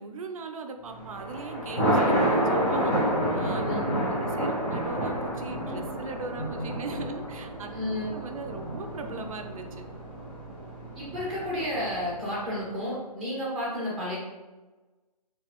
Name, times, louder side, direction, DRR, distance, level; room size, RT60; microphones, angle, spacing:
voice 1, 0.0-2.9 3.3-3.8 4.1-7.7 8.1-9.8, right 4 dB, 55° right, 5 dB, 0.6 m, -39 dB
Thunder, 0.9-12.3, right 1 dB, 25° left, 1.3 m, -29 dB
voice 2, 7.7-8.2 10.9-14.2, left 1 dB, ahead, -6 dB, 1.3 m, -32 dB
4.0 x 3.4 x 3.0 m, 1.2 s
hypercardioid pair, 160°, 21 cm